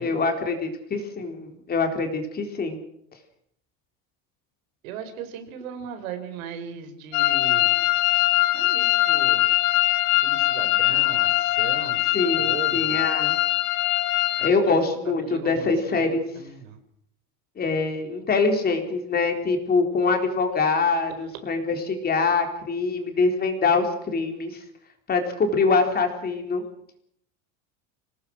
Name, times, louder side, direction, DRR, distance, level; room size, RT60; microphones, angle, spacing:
voice 1, 0.0-2.8 12.0-13.4 14.4-16.3 17.6-24.6 25.1-26.6, left 4 dB, 25° left, 4 dB, 4.0 m, -24 dB
voice 2, 4.8-7.7 8.5-9.4 10.2-12.0 12.4-13.1 14.4-14.8 15.2-16.8, right 7 dB, 80° right, 7 dB, 4.8 m, -38 dB
sound 1, 7.1-14.5, left 17 dB, 55° left, 1.7 m, -22 dB
27.0 x 18.5 x 6.4 m, 0.70 s
supercardioid pair, 145°, 40 cm